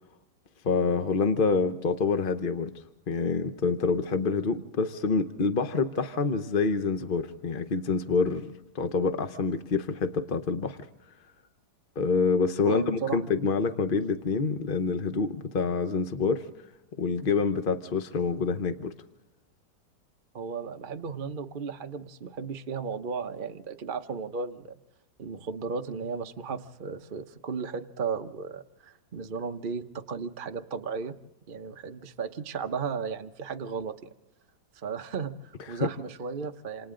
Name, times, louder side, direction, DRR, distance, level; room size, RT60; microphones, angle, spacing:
voice 1, 0.6-10.8 12.0-16.5 17.0-18.9 35.7-35.9, left 4 dB, 45° left, 8 dB, 0.7 m, -27 dB
voice 2, 12.6-13.3 20.3-24.8 25.2-31.2 31.5-34.1 34.7-36.9, right 5 dB, 40° right, 5 dB, 0.7 m, -35 dB
28.0 x 27.5 x 3.8 m, 0.92 s
omnidirectional pair, 2.0 m